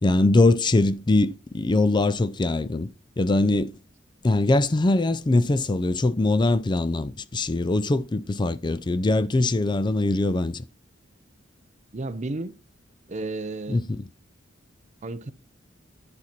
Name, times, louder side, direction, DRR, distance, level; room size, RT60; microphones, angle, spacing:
voice 1, 0.0-2.9 3.2-3.7 4.2-10.6 13.7-14.0, left 2 dB, 25° left, 0.4 m, -22 dB
voice 2, 11.9-12.6 13.1-13.8 15.0-15.3, right 2 dB, 40° right, 0.6 m, -32 dB
10.5 x 4.3 x 5.8 m
head